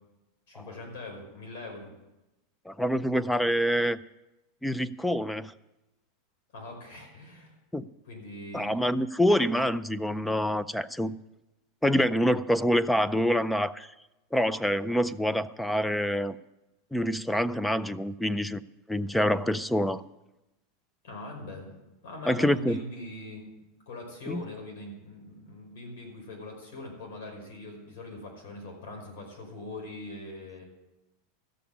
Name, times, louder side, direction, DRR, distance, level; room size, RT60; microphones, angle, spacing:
voice 1, 0.5-1.9 6.5-7.5 8.0-8.8 21.0-23.4 23.8-30.6, left 2 dB, 80° left, 1 dB, 5.2 m, -42 dB
voice 2, 2.7-4.0 4.6-5.5 7.7-7.9 8.5-11.1 11.8-13.9 14.3-16.4 16.9-18.6 18.9-20.0 22.3-22.8 24.3-24.4, equal, 5° left, 16 dB, 0.4 m, -26 dB
14.0 x 6.9 x 8.5 m, 1.0 s
supercardioid pair, 145°, 0 cm